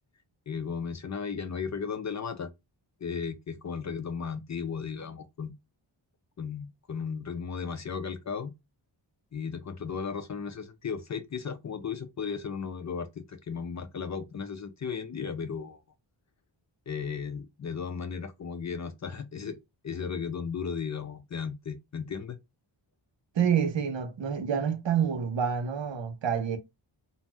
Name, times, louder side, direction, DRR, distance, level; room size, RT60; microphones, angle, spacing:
voice 1, 0.5-2.5 3.0-5.5 6.4-8.5 9.3-15.8 16.9-22.4, left 6 dB, 40° left, 0.4 m, -35 dB
voice 2, 23.3-26.6, right 7 dB, 70° right, 0.7 m, -28 dB
2.6 x 2.0 x 3.3 m
wide cardioid pair, 90°, 47 cm